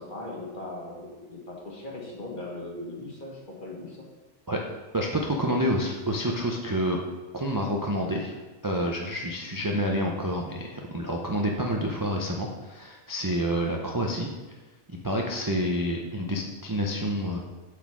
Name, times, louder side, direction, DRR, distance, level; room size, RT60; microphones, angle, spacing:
voice 1, 0.0-4.0, left 2 dB, 45° left, -2 dB, 1.6 m, -39 dB
voice 2, 4.9-7.0 7.3-8.3 8.6-14.3 15.0-17.4, equal, 25° right, -1 dB, 0.5 m, -28 dB
6.9 x 4.1 x 6.0 m, 1.2 s
omnidirectional pair, 1.2 m